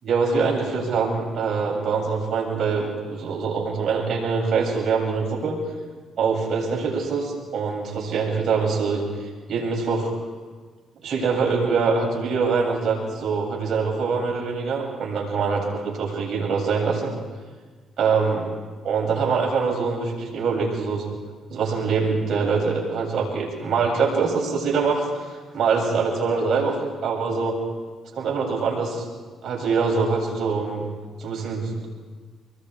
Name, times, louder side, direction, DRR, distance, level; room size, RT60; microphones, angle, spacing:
voice 1, 0.0-5.6 6.2-9.0 9.5-10.1 11.0-17.1 18.0-18.4 18.8-21.0 21.5-25.0 25.5-27.5 28.2-29.0 29.4-30.8 31.2-31.7, right 5 dB, 55° right, -2 dB, 8.0 m, -24 dB
26.0 x 22.5 x 4.9 m, 1.4 s
cardioid pair, 90°, 0 cm